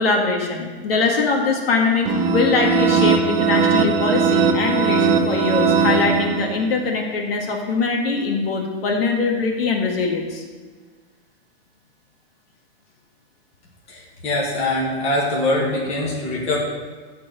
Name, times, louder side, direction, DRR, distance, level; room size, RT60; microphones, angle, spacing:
voice 1, 0.0-10.4, left 4 dB, 65° left, 1 dB, 2.0 m, -22 dB
sound 1, 2.0-6.8, right 5 dB, 25° right, 0.8 m, -19 dB
voice 2, 13.9-16.6, left 1 dB, 20° left, -3 dB, 2.1 m, -23 dB
14.0 x 4.7 x 7.7 m, 1.5 s
supercardioid pair, 170°, 31 cm